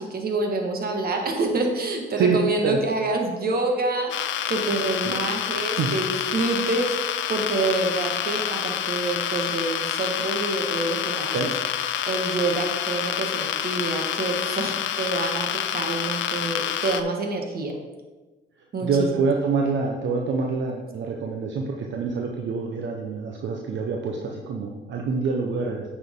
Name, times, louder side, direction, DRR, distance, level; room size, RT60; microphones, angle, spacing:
voice 1, 0.0-11.3 12.1-17.7 18.7-19.2, right 2 dB, 50° right, 2 dB, 1.7 m, -27 dB
voice 2, 2.1-2.8 5.1-5.2 5.8-5.9 11.3-11.5 18.8-25.9, right 4 dB, 65° right, 1 dB, 0.9 m, -26 dB
sound 1, 4.1-17.0, left 10 dB, 70° left, 0.5 m, -28 dB
9.1 x 6.1 x 3.8 m, 1.2 s
cardioid pair, 90°, 20 cm